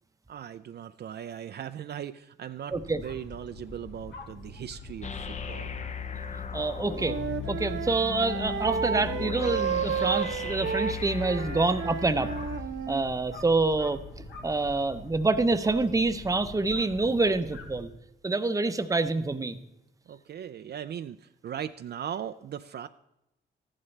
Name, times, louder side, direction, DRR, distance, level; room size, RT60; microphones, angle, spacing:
voice 1, 0.3-5.7 20.1-22.9, right 9 dB, 55° right, 10 dB, 0.4 m, -39 dB
sound 1, 2.7-17.8, left 2 dB, 65° left, 1.6 m, -45 dB
voice 2, 2.7-3.0 6.5-7.2 7.5-12.3 12.9-14.0 14.4-17.9 18.2-19.6, right 3 dB, 15° right, 10 dB, 0.7 m, -26 dB
sound 2, 5.0-12.6, left 6 dB, 35° left, 0.6 m, -37 dB
Wind instrument woodwind instrument, 6.6-13.1, right 7 dB, 75° right, 0.9 m, -32 dB
14.0 x 11.0 x 3.3 m, 0.89 s
cardioid pair, 85°, 20 cm